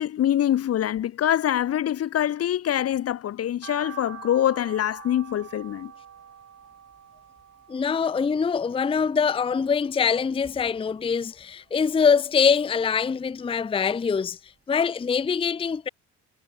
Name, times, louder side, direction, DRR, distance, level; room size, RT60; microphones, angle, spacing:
voice 1, 0.0-5.9, left 11 dB, 55° left, 0.7 m, -24 dB
sound 1, 3.6-9.9 10.3-11.4 11.8-13.2 13.6-13.7 14.2-14.3 14.5-14.6, right 8 dB, 55° right, 5.8 m, -46 dB
voice 2, 7.7-15.9, left 6 dB, 20° left, 0.5 m, -24 dB
cardioid pair, 90°, 30 cm